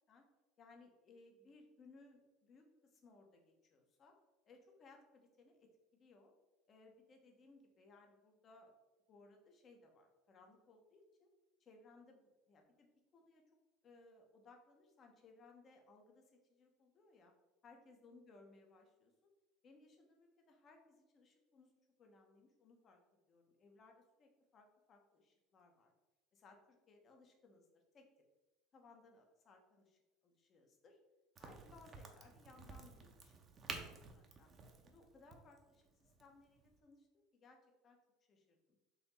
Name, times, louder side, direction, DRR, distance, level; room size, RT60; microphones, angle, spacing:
voice 1, 0.6-4.1 4.4-6.3 6.7-8.7 9.1-11.3 11.6-13.4 13.8-17.3 17.6-19.3 19.6-21.7 22.0-23.0 23.3-25.9 26.3-28.1 28.7-31.0 31.4-33.4 33.7-34.5 34.8-37.6 37.8-38.0 38.3-38.8, left 3 dB, 40° left, 3 dB, 0.9 m, -64 dB
Crack, 31.4-36.8, right 4 dB, 35° right, 0.7 m, -52 dB
4.1 x 2.8 x 4.1 m, 1.1 s
supercardioid pair, 105°, 0 cm